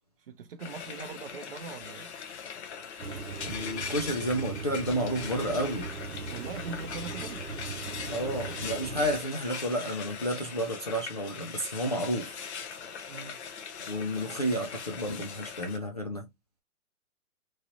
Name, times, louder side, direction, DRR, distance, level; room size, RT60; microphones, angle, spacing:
voice 1, 0.2-2.1 6.3-7.4 13.1-13.4, right 5 dB, 40° right, 0.6 m, -41 dB
Frying (food), 0.6-15.8, left 6 dB, 50° left, 0.8 m, -41 dB
sound 1, 3.0-9.2, right 4 dB, 85° right, 0.8 m, -39 dB
voice 2, 3.4-6.0 8.1-12.4 13.8-16.3, equal, 30° left, 0.4 m, -31 dB
3.0 x 2.8 x 2.4 m
figure-of-eight pair, 130°, 45 cm